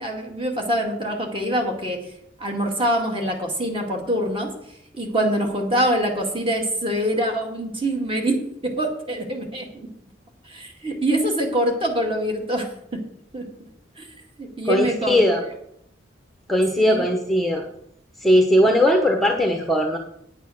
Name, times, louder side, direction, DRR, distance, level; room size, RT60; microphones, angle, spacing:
voice 1, 0.0-2.0 2.4-4.5 4.9-8.4 8.6-9.9 10.5-13.0 13.3-13.4 14.0-14.1 14.4-15.2 16.8-17.1 18.5-18.7, right 1 dB, 30° right, 2 dB, 2.2 m, -24 dB
voice 2, 14.7-15.4 16.5-17.6 18.2-20.0, equal, ahead, 3 dB, 0.9 m, -19 dB
9.7 x 8.1 x 6.4 m, 0.73 s
head